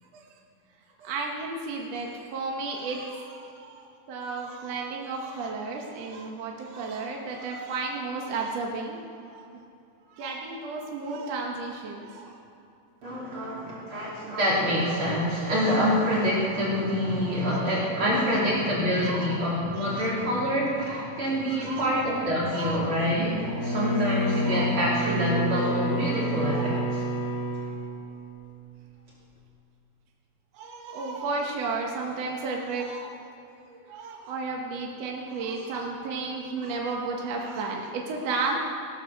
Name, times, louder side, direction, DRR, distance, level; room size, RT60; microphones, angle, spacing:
voice 1, 1.0-9.0 9.3-9.4 10.1-12.3 15.8-15.9 17.2-17.7 18.3-18.5 19.0-20.1 20.8-21.1 21.5-21.9 22.5-22.9 23.5-23.6 24.5-24.6 26.4-26.8 30.5-38.6, right 3 dB, 60° right, 0 dB, 1.9 m, -33 dB
voice 2, 13.0-26.8, equal, 35° right, -6 dB, 3.5 m, -26 dB
Bowed string instrument, 23.3-28.7, equal, 40° left, 1.8 m, -29 dB
18.0 x 9.3 x 6.4 m, 2.7 s
omnidirectional pair, 4.2 m